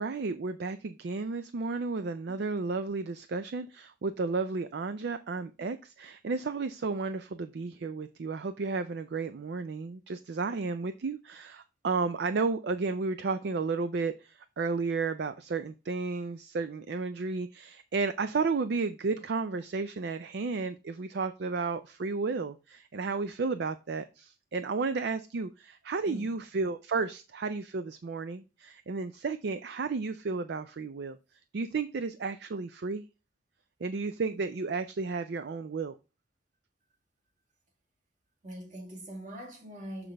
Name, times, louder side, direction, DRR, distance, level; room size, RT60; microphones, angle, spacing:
voice 1, 0.0-31.2 31.5-33.0 33.8-36.0, right 4 dB, 50° right, 0.4 m, -33 dB
voice 2, 26.0-26.4 38.4-40.1, equal, 35° right, 1.8 m, -43 dB
6.3 x 5.9 x 3.3 m
head